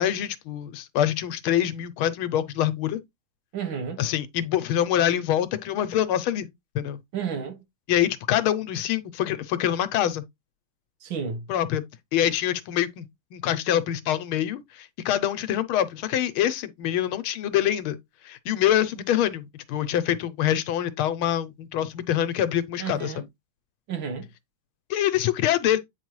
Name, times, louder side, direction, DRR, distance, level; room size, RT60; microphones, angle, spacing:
voice 1, 0.0-3.0 4.0-6.5 6.7-7.0 7.9-10.2 11.5-11.8 12.1-13.0 13.3-18.0 18.2-23.1 24.9-25.8, left 11 dB, 85° left, 1.6 m, -25 dB
voice 2, 3.5-4.0 7.1-7.6 11.0-11.5 22.8-23.2 23.9-24.3, right 6 dB, 65° right, 2.0 m, -31 dB
8.9 x 4.7 x 3.1 m
omnidirectional pair, 2.3 m